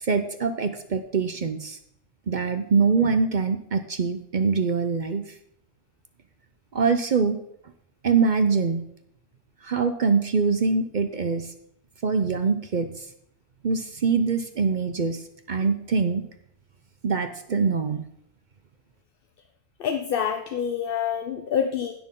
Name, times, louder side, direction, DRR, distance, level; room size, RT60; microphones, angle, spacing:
voice 1, 0.0-1.8 2.3-5.2 6.7-7.4 8.0-8.8 9.6-11.5 12.0-12.9 13.6-15.2 15.5-16.2 17.0-18.0, right 5 dB, 50° right, 9 dB, 0.6 m, -23 dB
voice 2, 19.8-21.9, left 8 dB, 55° left, 6 dB, 0.8 m, -26 dB
16.0 x 6.3 x 3.7 m, 0.73 s
omnidirectional pair, 1.3 m